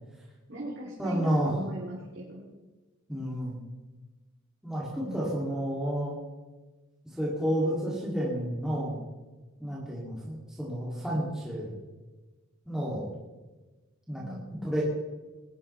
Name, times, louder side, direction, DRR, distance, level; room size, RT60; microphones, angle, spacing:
voice 1, 0.5-2.5 5.0-5.4 14.2-14.7, right 1 dB, 55° right, -5 dB, 3.6 m, -39 dB
voice 2, 1.0-1.5 3.1-3.6 4.6-6.2 7.0-9.0 9.6-11.7 12.7-13.0 14.1-14.4 14.6-14.8, equal, 5° right, -8 dB, 2.8 m, -30 dB
20.5 x 13.0 x 3.4 m, 1.2 s
head